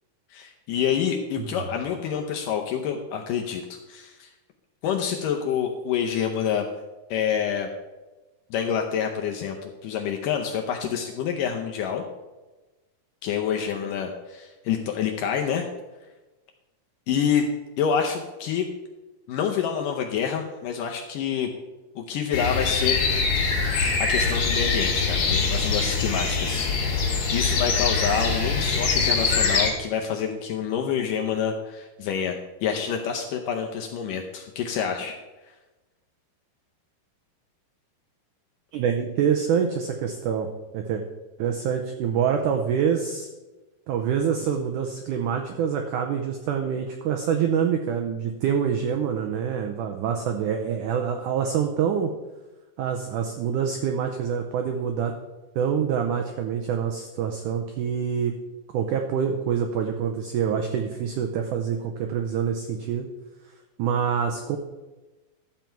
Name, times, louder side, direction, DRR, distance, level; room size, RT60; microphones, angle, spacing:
voice 1, 0.3-4.3 4.8-6.7 7.1-7.7 8.5-12.0 13.2-15.7 17.1-17.5 17.8-18.7 19.3-21.5 22.0-23.0 24.0-35.2, left 8 dB, 75° left, 2 dB, 2.0 m, -27 dB
sound 1, 22.3-29.7, left 4 dB, 50° left, 2.9 m, -23 dB
voice 2, 38.7-40.5 40.7-41.0 41.4-43.3 43.9-52.1 52.8-55.1 55.6-58.4 58.7-63.1 63.8-64.6, right 7 dB, 85° right, 4 dB, 1.8 m, -26 dB
12.5 x 7.5 x 4.5 m, 1.1 s
omnidirectional pair, 4.5 m